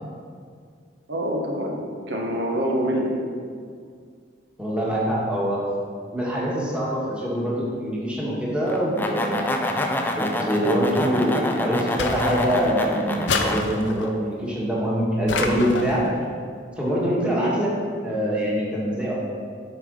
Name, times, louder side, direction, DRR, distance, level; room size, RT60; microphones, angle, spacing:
voice 1, 1.1-3.2 17.3-17.5, equal, 65° right, 0 dB, 1.1 m, -26 dB
voice 2, 4.6-5.6 6.1-16.0 16.8-17.7 18.0-19.1, equal, 5° right, -6 dB, 1.6 m, -24 dB
sound 1, 8.7-13.6, left 1 dB, 10° left, 0.5 m, -27 dB
sound 2, 12.0-12.8 13.3-14.2 15.3-16.1, left 3 dB, 75° left, 0.7 m, -28 dB
8.8 x 5.1 x 5.2 m, 2.1 s
head